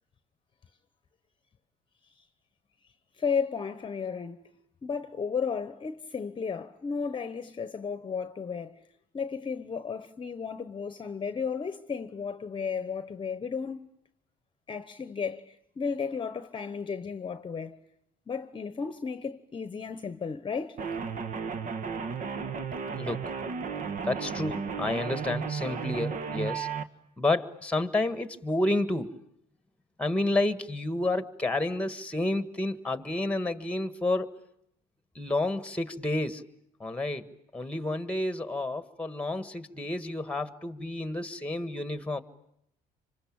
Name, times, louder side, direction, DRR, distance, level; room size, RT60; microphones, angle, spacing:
voice 1, 3.2-4.5 4.8-8.8 9.1-13.9 14.7-17.8 18.3-20.8, left 6 dB, 30° left, 1.1 m, -34 dB
sound 1, 20.8-26.8, right 5 dB, 50° right, 1.5 m, -34 dB
voice 2, 23.0-23.3 24.0-26.7 27.2-29.2 30.0-34.4 35.1-36.4 36.8-42.2, left 2 dB, 5° left, 1.6 m, -30 dB
26.5 x 25.5 x 8.8 m
cardioid pair, 110°, 17 cm